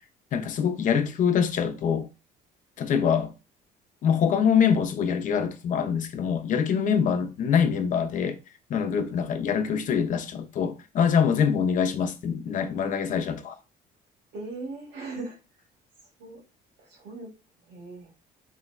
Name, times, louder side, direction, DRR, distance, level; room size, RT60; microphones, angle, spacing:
voice 1, 0.3-2.1 2.8-3.3 4.0-8.4 8.7-13.5, left 7 dB, 50° left, 0.5 m, -24 dB
voice 2, 14.3-15.4 16.0-16.4 16.8-17.3 17.6-18.1, right 3 dB, 80° right, 1.3 m, -39 dB
3.8 x 2.1 x 2.3 m
cardioid pair, 110°, 17 cm